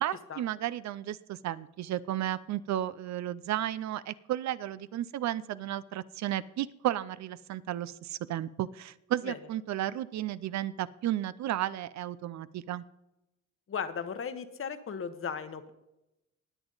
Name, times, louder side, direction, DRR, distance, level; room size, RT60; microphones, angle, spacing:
voice 1, 0.0-12.8, right 12 dB, 65° right, 17 dB, 0.5 m, -33 dB
voice 2, 13.7-15.7, left 6 dB, 45° left, 11 dB, 1.1 m, -36 dB
20.0 x 7.1 x 3.9 m, 0.92 s
cardioid pair, 90°, 30 cm